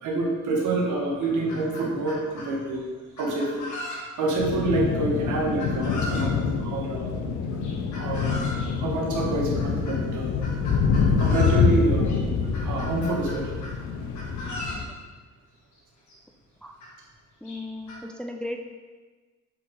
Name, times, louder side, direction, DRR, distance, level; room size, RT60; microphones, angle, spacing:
voice 1, 0.0-2.8 3.2-3.6 4.2-7.1 7.9-8.4 8.8-10.3 11.2-12.1 12.6-13.6, right 2 dB, 80° right, -2 dB, 1.8 m, -27 dB
Chicken rooster, 0.6-0.7 1.0-2.5 3.2-4.3 5.6-6.3 7.6-8.7 9.6-10.0 10.4-11.6 12.0-12.2 12.5-13.8 14.1-14.8 15.8-15.9 16.1-16.2 16.8-16.9 17.4-18.0, left 1 dB, 70° left, 2.3 m, -37 dB
sound 1, 4.4-14.8, left 5 dB, 90° left, 0.8 m, -26 dB
voice 2, 17.4-18.7, left 1 dB, 5° left, 4 dB, 0.5 m, -36 dB
7.3 x 5.0 x 3.9 m, 1.3 s
cardioid pair, 90°, 30 cm